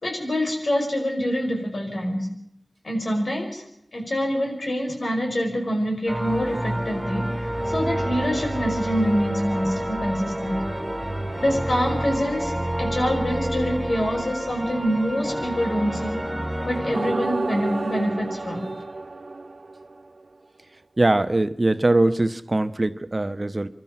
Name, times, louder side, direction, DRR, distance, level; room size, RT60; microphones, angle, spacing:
voice 1, 0.0-2.3 2.8-3.6 3.9-10.6 11.4-16.2 16.6-18.7, equal, 75° left, 2 dB, 5.4 m, -25 dB
sound 1, 6.1-17.0, right 1 dB, 15° right, 3.6 m, -28 dB
sound 2, 16.9-20.2, right 3 dB, 65° right, 0.7 m, -30 dB
voice 2, 21.0-23.7, right 2 dB, 40° right, 11 dB, 1.0 m, -21 dB
26.5 x 12.5 x 8.6 m, 0.75 s
wide cardioid pair, 65°, 0 cm